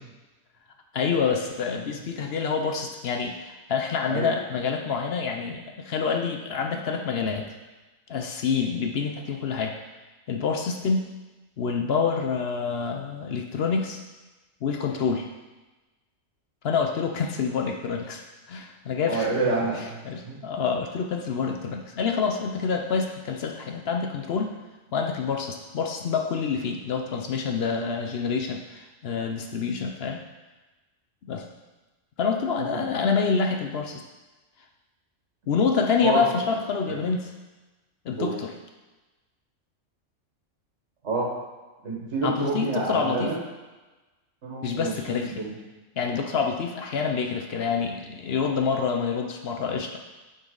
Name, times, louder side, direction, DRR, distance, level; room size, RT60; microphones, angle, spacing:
voice 1, 0.9-7.5 8.1-9.8 10.3-11.1 11.6-14.0 14.6-15.3 16.6-18.2 18.5-19.3 20.0-24.5 24.9-30.2 31.3-31.5 32.2-34.0 35.5-37.3 38.0-38.5 42.2-43.4 44.6-45.4 46.0-50.0, left 5 dB, 60° left, 3 dB, 0.8 m, -27 dB
voice 2, 19.0-20.0 20.2-20.4 32.7-32.8 36.0-36.3 36.9-37.0 38.2-38.3 41.0-41.3 41.8-43.4 44.4-45.6, right 3 dB, 65° right, -3 dB, 1.7 m, -28 dB
8.9 x 4.1 x 3.9 m, 1.2 s
omnidirectional pair, 1.3 m